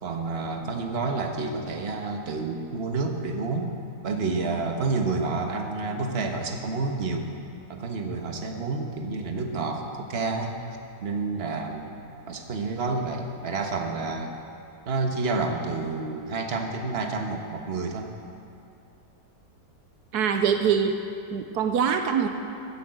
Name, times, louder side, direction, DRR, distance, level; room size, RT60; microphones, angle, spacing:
voice 1, 0.0-3.7 4.0-7.3 7.7-10.5 11.0-11.9 12.3-14.3 14.8-18.1, right 3 dB, 40° right, 3 dB, 1.4 m, -29 dB
voice 2, 20.1-21.0 21.3-22.3, right 7 dB, 80° right, 6 dB, 1.3 m, -23 dB
15.0 x 8.8 x 7.8 m, 2.7 s
omnidirectional pair, 1.7 m